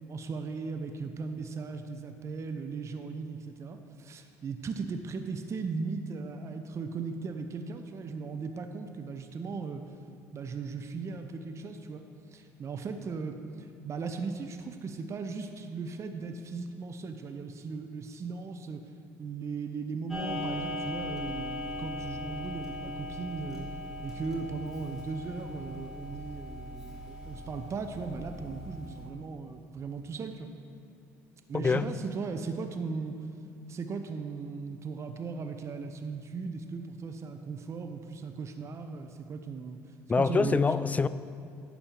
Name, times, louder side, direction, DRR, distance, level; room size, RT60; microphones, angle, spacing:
voice 1, 0.1-9.8 10.3-12.0 12.3-18.8 19.2-23.7 24.0-30.5 31.5-33.2 33.7-39.8 40.1-40.6, right 4 dB, 40° right, 0.7 m, -37 dB
Clock, 20.1-29.1, left 2 dB, 5° right, 2.3 m, -39 dB
voice 2, 31.5-32.0 40.1-41.1, left 4 dB, 20° left, 0.3 m, -25 dB
11.0 x 4.3 x 7.0 m
supercardioid pair, 80°, 7 cm